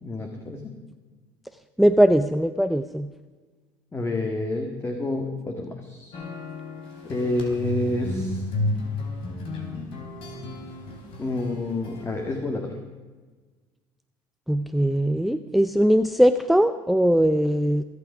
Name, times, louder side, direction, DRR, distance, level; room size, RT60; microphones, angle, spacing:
voice 1, 0.0-0.8 3.9-6.2 7.0-8.4 11.2-12.8, left 2 dB, 25° left, 4 dB, 1.8 m, -29 dB
voice 2, 1.8-3.1 14.5-17.8, equal, ahead, 11 dB, 0.6 m, -20 dB
sound 1, 6.1-12.4, left 2 dB, 60° left, 3.7 m, -32 dB
23.0 x 8.4 x 5.0 m, 1.4 s
supercardioid pair, 90°, 10 cm